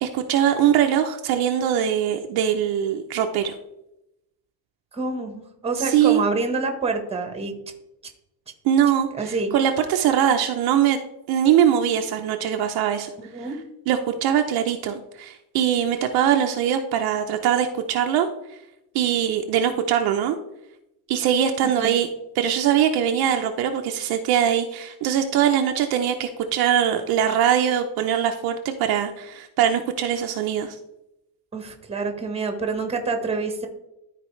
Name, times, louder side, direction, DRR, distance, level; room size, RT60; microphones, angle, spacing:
voice 1, 0.0-3.5 5.8-6.2 8.6-11.0 11.3-13.1 13.4-13.5 13.9-18.3 18.9-20.4 21.1-22.1 22.3-30.8, right 9 dB, 55° right, 4 dB, 0.7 m, -22 dB
voice 2, 4.9-7.5 9.2-9.5 13.3-13.6 21.6-22.0 31.5-33.7, right 3 dB, 15° right, 6 dB, 1.2 m, -27 dB
13.0 x 4.4 x 3.2 m, 0.88 s
cardioid pair, 135°, 45 cm